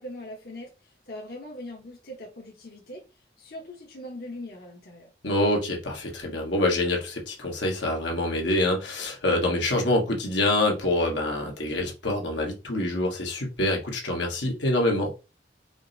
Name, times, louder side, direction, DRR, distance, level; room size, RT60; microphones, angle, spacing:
voice 1, 0.0-3.0 3.4-5.1, left 1 dB, 55° left, 1.0 m, -41 dB
voice 2, 5.2-15.1, left 1 dB, 85° left, 1.3 m, -26 dB
5.0 x 2.0 x 3.9 m
head